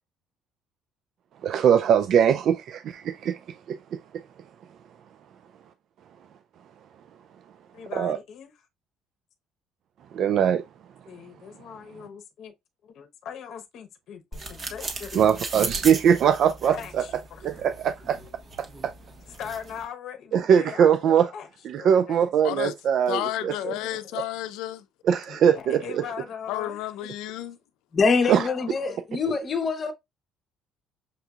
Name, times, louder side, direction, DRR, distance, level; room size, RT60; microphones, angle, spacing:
voice 1, 1.4-3.4 3.7-3.8 7.9-8.2 10.1-10.6 15.1-17.0 17.4-18.2 18.8-18.9 20.3-21.3 21.7-23.7 25.0-26.0 28.3-28.5, right 8 dB, 60° right, 0.3 m, -21 dB
voice 2, 7.7-8.5 11.1-12.5 13.0-15.2 16.6-17.4 19.4-21.5 21.8-22.3 23.5-24.1 25.3-26.8 28.2-29.0, left 8 dB, 60° left, 0.8 m, -40 dB
sound 1, 14.3-19.9, right 3 dB, 30° right, 1.2 m, -37 dB
voice 3, 23.1-24.8 26.5-27.6, left 13 dB, 90° left, 0.5 m, -31 dB
voice 4, 27.9-29.9, left 4 dB, 35° left, 0.9 m, -24 dB
6.6 x 2.7 x 2.3 m
cardioid pair, 120°, 0 cm